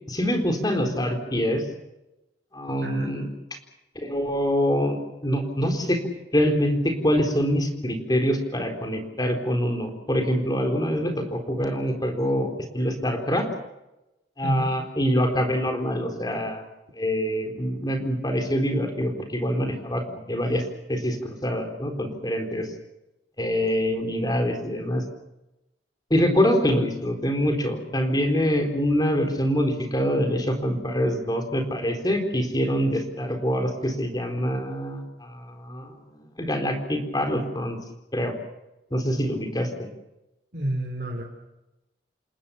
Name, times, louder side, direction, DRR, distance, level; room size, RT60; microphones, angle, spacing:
voice 1, 0.1-1.6 2.5-3.2 4.0-6.0 6.3-13.5 14.4-16.6 17.0-20.6 20.9-22.7 23.4-25.0 26.1-35.9 36.4-37.8 38.1-38.3 38.9-39.9, equal, 20° left, 4 dB, 4.0 m, -25 dB
voice 2, 2.8-3.1 14.4-14.7 40.5-41.2, right 1 dB, 55° right, -1 dB, 4.3 m, -29 dB
28.5 x 19.5 x 7.0 m, 0.95 s
head